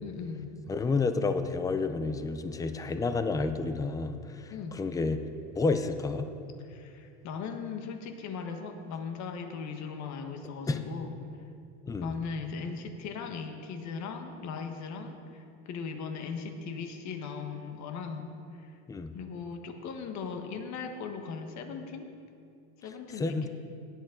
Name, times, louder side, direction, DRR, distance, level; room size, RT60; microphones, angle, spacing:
voice 1, 0.0-0.4 4.5-4.8 6.6-11.2 12.0-18.8 19.1-22.1 22.8-23.5, left 5 dB, 45° left, 5 dB, 1.4 m, -38 dB
voice 2, 0.7-5.2 5.6-6.3 10.7-10.8 11.9-12.1 18.9-19.1 23.2-23.5, left 3 dB, 10° left, 9 dB, 0.5 m, -30 dB
17.0 x 9.0 x 3.8 m, 2.5 s
supercardioid pair, 115°, 39 cm